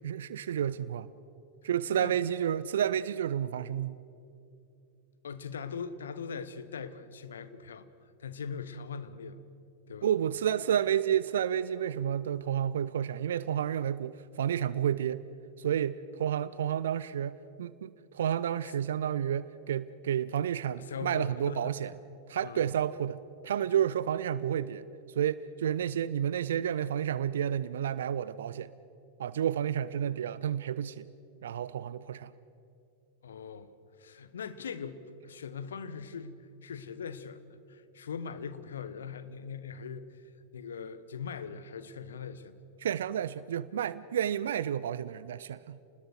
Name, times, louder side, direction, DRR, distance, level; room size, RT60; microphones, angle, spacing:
voice 1, 0.0-1.1 1.6-4.0 10.0-15.2 15.6-21.9 22.3-24.8 25.2-28.7 29.2-31.1 31.4-32.3 42.8-45.8, right 9 dB, 60° right, 18 dB, 0.5 m, -30 dB
voice 2, 5.2-7.9 8.2-9.4 9.9-10.1 18.6-18.7 20.8-21.7 22.4-22.7 33.2-33.7 34.0-40.1 40.5-42.6, left 6 dB, 65° left, 13 dB, 1.3 m, -41 dB
29.0 x 20.5 x 6.7 m, 2.7 s
figure-of-eight pair, 90°, 0 cm